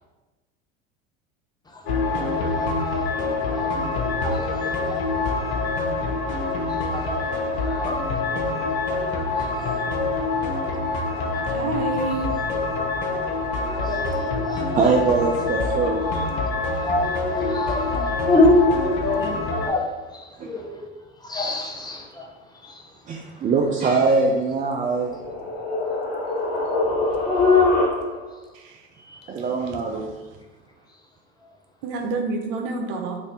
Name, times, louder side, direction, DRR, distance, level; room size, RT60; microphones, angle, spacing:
sound 1, 1.9-19.7, left 3 dB, 80° left, 0.7 m, -26 dB
voice 1, 2.2-3.1 3.4-3.7 4.0-5.0 5.3-5.5 6.7-8.0 8.9-9.1 9.4-9.8 10.6-10.7 11.1-11.4 13.6-14.6 16.8-20.8 21.2-22.3 22.6-22.8 27.2-27.8 29.1-29.2, left 3 dB, 15° left, 0.7 m, -25 dB
voice 2, 11.5-12.3 28.5-28.8 31.8-33.2, right 3 dB, 65° right, 0.7 m, -28 dB
voice 3, 14.7-16.3 17.9-18.0 20.4-20.5 23.1-25.1 29.3-30.1, right 4 dB, 25° right, 0.4 m, -22 dB
sound 2, 24.6-28.4, left 2 dB, 60° left, 1.2 m, -27 dB
3.2 x 2.6 x 4.1 m
hypercardioid pair, 80°, 31 cm